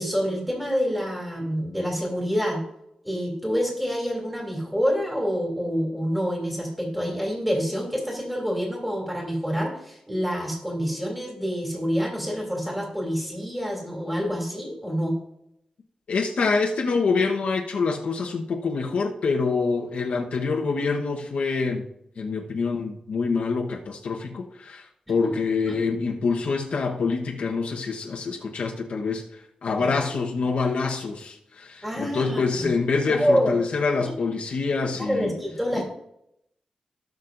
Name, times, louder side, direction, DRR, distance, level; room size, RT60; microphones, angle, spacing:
voice 1, 0.0-2.6 3.0-15.1 25.2-25.3 25.7-25.8 31.8-32.7 33.1-33.5 34.2-34.3 35.1-35.8, equal, 5° right, -1 dB, 2.8 m, -27 dB
voice 2, 16.1-21.9 22.2-35.3 35.7-35.8, left 4 dB, 80° left, 0 dB, 1.1 m, -26 dB
17.5 x 6.3 x 2.6 m, 0.77 s
wide cardioid pair, 155°, 2 cm